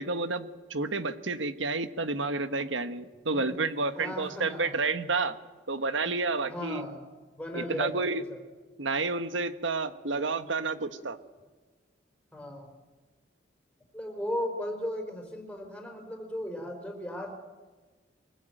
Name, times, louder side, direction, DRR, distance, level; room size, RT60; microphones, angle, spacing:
voice 1, 0.0-5.4 5.7-6.8 7.5-8.2 8.8-11.2, right 3 dB, 85° right, 10 dB, 1.4 m, -30 dB
voice 2, 4.0-4.8 6.4-7.0 7.4-8.4 12.3-12.7 13.9-17.3, left 1 dB, 5° left, 2 dB, 4.3 m, -36 dB
24.0 x 20.5 x 9.0 m, 1.3 s
head